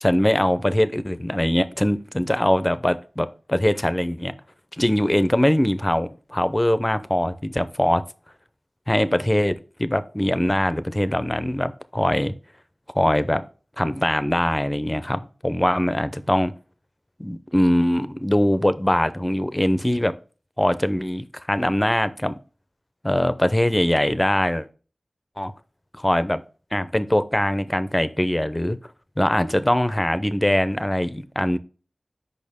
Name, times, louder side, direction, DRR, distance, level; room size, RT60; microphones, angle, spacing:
voice 1, 0.0-4.3 4.8-8.0 8.9-12.3 12.9-13.4 13.8-16.5 17.2-20.1 20.6-22.3 23.0-24.7 25.4-25.5 26.0-26.4 26.7-28.8 29.2-31.6, left 1 dB, 20° left, 0.6 m, -22 dB
6.5 x 5.4 x 3.5 m
wide cardioid pair, 65°, 0 cm